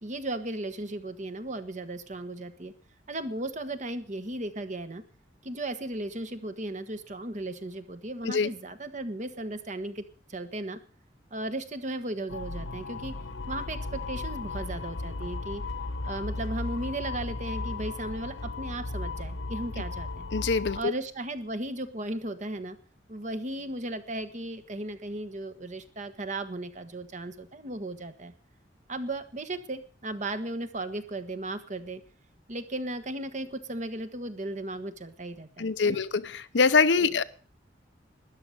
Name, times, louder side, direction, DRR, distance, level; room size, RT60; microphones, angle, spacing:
voice 1, 0.0-2.7 3.1-5.0 5.4-10.0 10.3-10.8 11.3-13.2 13.5-15.6 16.0-20.3 20.7-22.8 23.1-28.3 28.9-32.0 32.5-36.0 37.0-37.2, right 1 dB, 40° right, 1.3 m, -36 dB
sound 1, 12.3-20.8, left 2 dB, 90° left, 1.0 m, -35 dB
voice 2, 20.3-20.9 35.6-37.2, left 4 dB, 70° left, 0.7 m, -24 dB
13.0 x 10.5 x 6.5 m
head